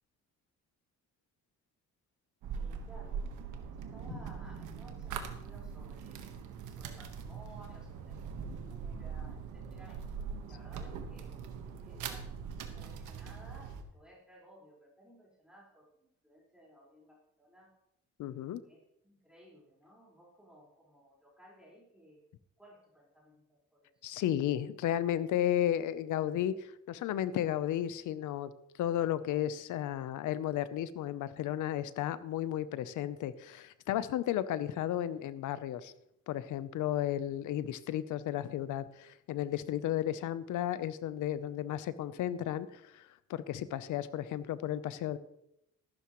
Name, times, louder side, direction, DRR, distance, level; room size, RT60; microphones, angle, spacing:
sound 1, 2.4-13.8, right 6 dB, 85° right, 1.4 m, -42 dB
voice 1, 2.5-3.3 3.6-6.3 6.8-8.2 8.6-10.2 10.5-11.3 11.6-17.7 18.7-22.2 22.6-23.9 37.0-37.2, equal, 5° right, -5 dB, 4.7 m, -58 dB
voice 2, 18.2-18.6 24.0-28.5 28.8-35.9 36.3-45.2, left 11 dB, 80° left, 15 dB, 0.8 m, -33 dB
14.0 x 12.0 x 3.1 m, 0.81 s
cardioid pair, 90°, 30 cm